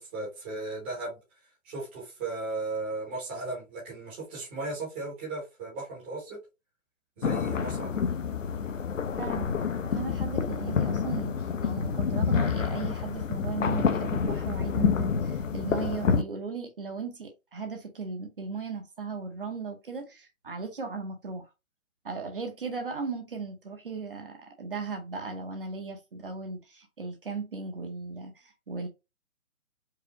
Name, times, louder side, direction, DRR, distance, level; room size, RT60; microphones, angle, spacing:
voice 1, 0.0-1.1 1.6-6.4 7.2-8.1, right 3 dB, 10° right, 0.8 m, -36 dB
sound 1, 7.2-16.2, left 6 dB, 65° left, 0.7 m, -28 dB
voice 2, 9.2-9.6 9.9-21.5 22.0-28.9, right 4 dB, 40° right, 0.8 m, -37 dB
4.8 x 2.3 x 2.9 m
hypercardioid pair, 160°, 42 cm